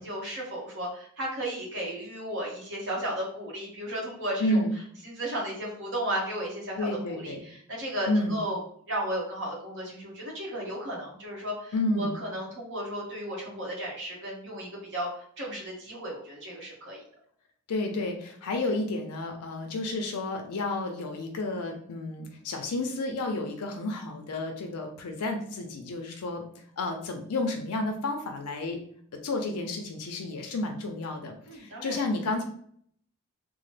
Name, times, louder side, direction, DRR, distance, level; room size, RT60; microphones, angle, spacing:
voice 1, 0.0-4.6 5.0-8.6 8.9-15.1 15.4-17.0 31.4-32.0, right 1 dB, 55° right, -4 dB, 1.0 m, -34 dB
voice 2, 4.4-4.7 6.8-7.4 8.1-8.4 11.7-12.2 17.7-26.4 26.8-28.8 29.2-32.4, left 2 dB, 85° left, 3 dB, 0.5 m, -31 dB
2.9 x 2.0 x 3.2 m, 0.62 s
head